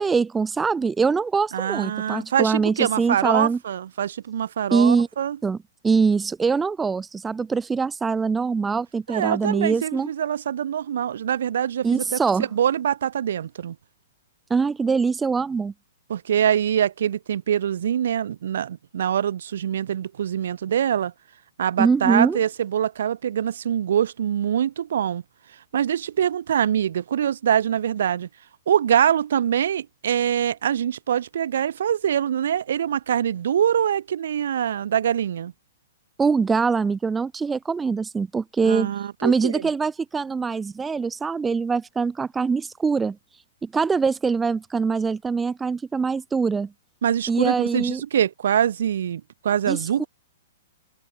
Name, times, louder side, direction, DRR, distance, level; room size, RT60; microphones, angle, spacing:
voice 1, 0.0-3.6 4.7-5.1 5.4-5.6 5.8-10.1 11.8-12.5 14.5-15.7 21.8-22.4 36.2-38.9 39.2-43.2 43.6-46.7 47.3-48.0 49.7-50.0, right 5 dB, 10° right, 1.1 m, -23 dB
voice 2, 1.5-5.4 9.1-13.8 16.1-21.1 21.6-25.2 25.7-28.3 28.7-35.5 38.6-39.7 47.0-50.1, right 9 dB, 70° right, 4.1 m, -24 dB
hypercardioid pair, 140°, 0 cm